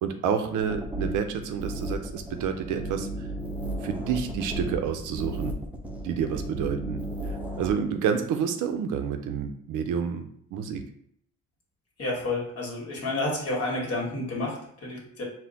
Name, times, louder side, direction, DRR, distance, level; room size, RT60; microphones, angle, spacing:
voice 1, 0.0-3.1 3.8-5.5 6.0-7.0 7.6-10.3 10.5-10.8, right 7 dB, 85° right, 7 dB, 0.6 m, -29 dB
sound 1, 0.6-7.7, right 1 dB, 5° right, 0.6 m, -34 dB
voice 2, 12.0-15.2, left 2 dB, 55° left, -1 dB, 1.5 m, -30 dB
4.3 x 2.1 x 4.0 m, 0.67 s
cardioid pair, 90°, 30 cm